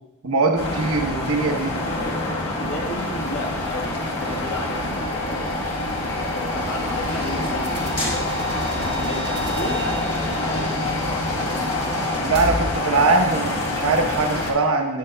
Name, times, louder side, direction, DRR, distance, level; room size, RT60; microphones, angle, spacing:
voice 1, 0.2-1.8 12.2-15.0, right 3 dB, 80° right, 3 dB, 1.0 m, -21 dB
sound 1, 0.6-14.5, left 2 dB, 85° left, 1.3 m, -26 dB
voice 2, 1.9-5.5 6.3-8.3 8.8-11.2, left 1 dB, 65° left, 0 dB, 1.4 m, -34 dB
sound 2, 6.0-11.7, left 1 dB, 25° left, 1.7 m, -37 dB
sound 3, 7.0-12.7, right 1 dB, 50° right, 1.3 m, -33 dB
11.5 x 7.2 x 2.2 m, 0.98 s
head